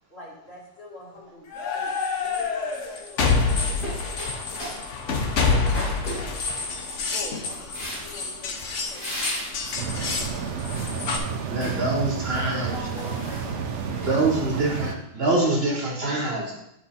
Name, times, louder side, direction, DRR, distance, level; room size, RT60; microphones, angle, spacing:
voice 1, 0.1-1.5 1.7-3.5 4.0-4.3 7.1-7.8 8.0-9.1 10.9-11.0 15.4-15.6, left 2 dB, 60° left, -4 dB, 2.1 m, -44 dB
sound 1, 1.5-11.2, left 4 dB, 80° left, 1.2 m, -27 dB
sound 2, 3.6-4.8 5.1-6.8 7.3-8.3 8.8-9.6 10.1-11.0 11.4-11.8 12.2-14.4, equal, 45° left, 2.4 m, -36 dB
sound 3, 9.8-14.9, right 6 dB, 75° right, 1.0 m, -31 dB
voice 2, 11.4-12.8 14.0-16.6, right 2 dB, 55° right, -1 dB, 1.4 m, -25 dB
voice 3, 12.3-14.6, equal, ahead, -7 dB, 2.4 m, -43 dB
9.9 x 3.6 x 4.2 m, 0.82 s
omnidirectional pair, 1.2 m